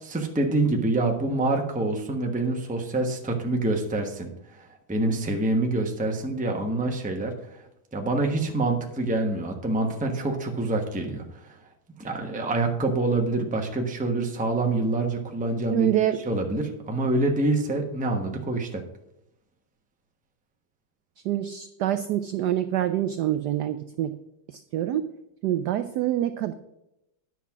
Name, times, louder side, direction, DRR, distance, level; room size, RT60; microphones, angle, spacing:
voice 1, 0.0-7.6 7.9-11.6 12.0-15.9 16.3-18.8, right 2 dB, 5° right, 2 dB, 0.7 m, -26 dB
voice 2, 15.7-16.2 21.2-24.1 24.5-25.1 25.4-26.5, right 12 dB, 75° right, 10 dB, 0.9 m, -26 dB
10.0 x 6.0 x 5.9 m, 0.85 s
omnidirectional pair, 2.3 m